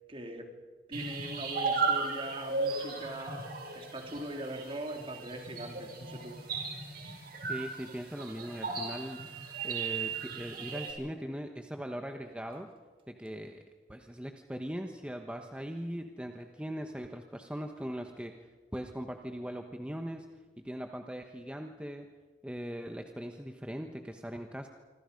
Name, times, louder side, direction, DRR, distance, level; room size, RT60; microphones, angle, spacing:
voice 1, 0.1-0.6 0.9-6.5, right 1 dB, 30° right, 3.2 m, -41 dB
sound 1, 0.9-10.9, right 4 dB, 55° right, 6.0 m, -36 dB
voice 2, 7.5-9.3 9.6-12.7 13.1-13.6 13.9-18.3 18.7-20.3 20.6-22.0 22.4-24.7, equal, 5° right, 1.2 m, -40 dB
26.0 x 26.0 x 5.3 m
head